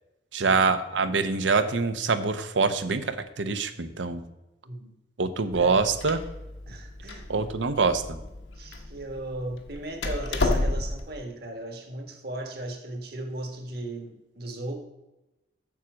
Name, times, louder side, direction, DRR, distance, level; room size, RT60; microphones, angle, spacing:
voice 1, 0.3-4.2 5.2-6.2 7.3-8.2, right 4 dB, 90° right, 10 dB, 0.8 m, -25 dB
Door, 5.5-11.1, left 2 dB, 80° left, 1.1 m, -31 dB
voice 2, 6.7-7.3 8.5-14.7, right 1 dB, 60° right, 4 dB, 1.5 m, -37 dB
7.2 x 7.1 x 6.2 m, 0.98 s
head